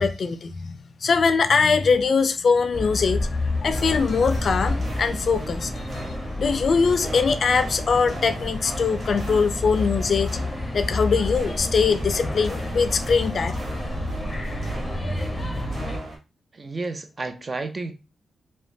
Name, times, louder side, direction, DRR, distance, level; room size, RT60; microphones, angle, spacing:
voice 1, 0.0-3.3 3.6-6.1 6.4-10.3 10.7-13.5, left 5 dB, 60° left, 0.3 m, -22 dB
sound 1, 2.7-16.0, left 2 dB, 20° left, 0.6 m, -29 dB
sound 2, 3.7-16.2, right 2 dB, 60° right, 0.9 m, -38 dB
voice 2, 16.5-17.9, right 3 dB, 40° right, 0.5 m, -31 dB
2.9 x 2.1 x 2.6 m
cardioid pair, 55°, 0 cm